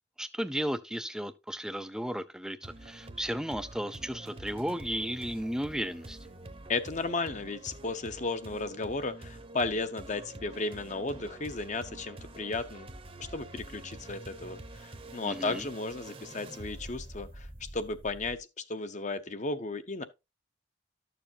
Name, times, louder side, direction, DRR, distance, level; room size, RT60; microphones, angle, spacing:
voice 1, 0.2-6.2 15.2-15.7, equal, 5° right, 0.5 m, -34 dB
sound 1, 2.6-18.4, right 2 dB, 30° right, 0.9 m, -46 dB
voice 2, 6.7-12.9 13.3-17.5 17.7-18.4 18.7-20.0, left 3 dB, 40° left, 0.9 m, -34 dB
12.5 x 6.9 x 2.8 m
head